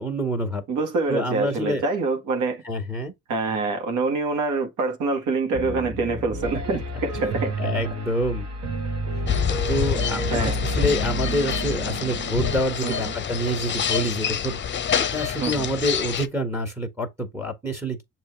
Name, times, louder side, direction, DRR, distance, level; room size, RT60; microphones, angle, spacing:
voice 1, 0.0-0.6 1.1-1.8 2.6-3.1 7.1-8.5 9.1-9.3 9.7-14.6 15.0-18.0, equal, 10° right, 1.7 m, -27 dB
voice 2, 0.7-2.6 3.3-7.6 7.8-7.9 10.3-10.6 12.8-13.1 15.4-15.7, right 3 dB, 80° right, 1.7 m, -26 dB
Piano, 5.5-12.6, right 2 dB, 60° right, 1.7 m, -30 dB
sound 1, 9.3-16.3, left 9 dB, 40° left, 0.7 m, -27 dB
6.7 x 3.1 x 4.5 m
cardioid pair, 90°, 30 cm